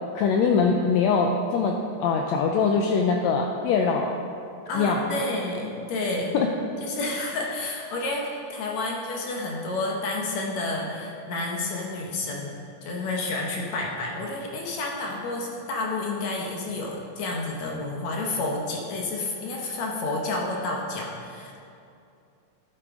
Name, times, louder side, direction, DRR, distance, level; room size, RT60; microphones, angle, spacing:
voice 1, 0.1-4.1 4.7-5.0 6.3-6.5, left 5 dB, 85° left, 2 dB, 1.6 m, -22 dB
voice 2, 4.7-6.4 6.8-21.6, left 2 dB, 70° left, -1 dB, 2.0 m, -30 dB
11.5 x 8.5 x 3.6 m, 2.5 s
omnidirectional pair, 3.7 m